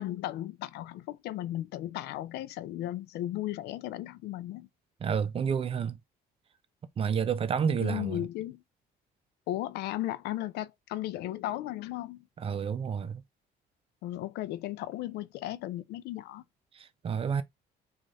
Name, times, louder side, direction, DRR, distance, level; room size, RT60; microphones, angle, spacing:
voice 1, 0.0-4.7 7.8-8.6 9.5-12.3 14.0-16.4, left 14 dB, 75° left, 0.4 m, -35 dB
voice 2, 5.0-6.0 7.0-8.3 12.4-13.2 16.7-17.4, right 7 dB, 35° right, 0.5 m, -30 dB
3.0 x 2.4 x 3.9 m
cardioid pair, 110°, 17 cm